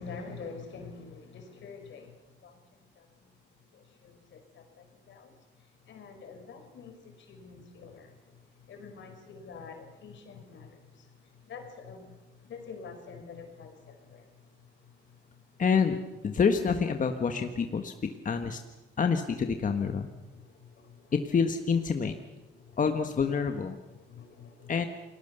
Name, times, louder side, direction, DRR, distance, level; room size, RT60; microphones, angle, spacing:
voice 1, 0.0-2.6 3.0-3.3 3.7-5.3 5.9-11.1 11.5-14.3 14.8-15.4 20.3-21.1 22.5-22.8 24.1-24.7, left 5 dB, 70° left, 5 dB, 5.0 m, -47 dB
voice 2, 15.6-16.0 16.2-18.6 19.0-20.1 21.1-22.1 22.8-23.8 24.7-24.9, left 6 dB, 40° left, 6 dB, 1.5 m, -27 dB
29.0 x 20.0 x 6.9 m, 1.1 s
cardioid pair, 90°, 20 cm